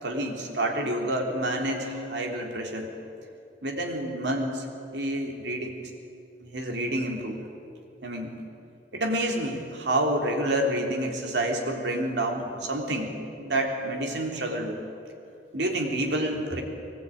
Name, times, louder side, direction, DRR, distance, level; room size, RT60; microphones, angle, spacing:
voice 1, 0.0-2.9 3.6-4.7 4.9-5.8 6.4-7.4 8.0-8.3 8.9-13.1 13.4-14.8 15.5-16.6, right 1 dB, 75° right, 2 dB, 3.5 m, -28 dB
22.5 x 19.5 x 9.4 m, 2.8 s
head